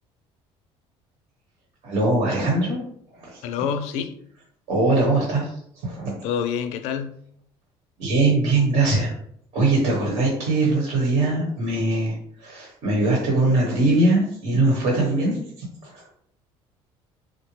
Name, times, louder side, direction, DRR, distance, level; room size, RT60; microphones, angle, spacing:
voice 1, 1.8-2.8 3.1-3.4 4.7-5.5 5.8-6.2 8.0-9.1 9.5-12.1 12.4-16.0, right 2 dB, 75° right, -2 dB, 1.1 m, -21 dB
voice 2, 3.4-4.1 6.2-7.2, left 7 dB, 80° left, 8 dB, 0.4 m, -27 dB
3.8 x 2.2 x 3.0 m, 0.67 s
cardioid pair, 175°, 11 cm